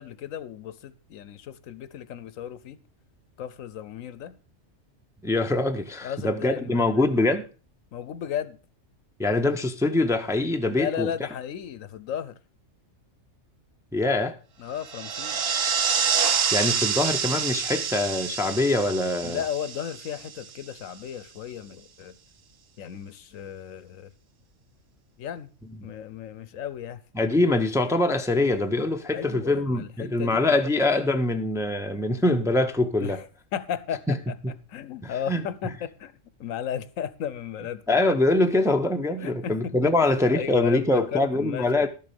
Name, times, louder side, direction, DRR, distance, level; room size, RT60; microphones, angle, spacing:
voice 1, 0.0-2.8 3.4-4.4 6.0-6.9 7.9-8.6 10.7-12.4 14.6-15.4 19.2-22.2 22.8-24.1 25.2-25.5 25.8-27.0 29.1-30.7 33.0-33.3 33.5-34.4 34.7-38.0 39.2-41.9, left 9 dB, 90° left, 1.2 m, -34 dB
voice 2, 5.2-7.4 9.2-11.1 13.9-14.3 16.5-19.4 27.1-33.2 34.1-34.2 35.0-35.4 37.9-41.9, left 2 dB, 5° right, 0.6 m, -24 dB
sound 1, 14.8-20.6, right 6 dB, 55° right, 1.0 m, -27 dB
12.0 x 6.8 x 5.2 m
omnidirectional pair, 1.3 m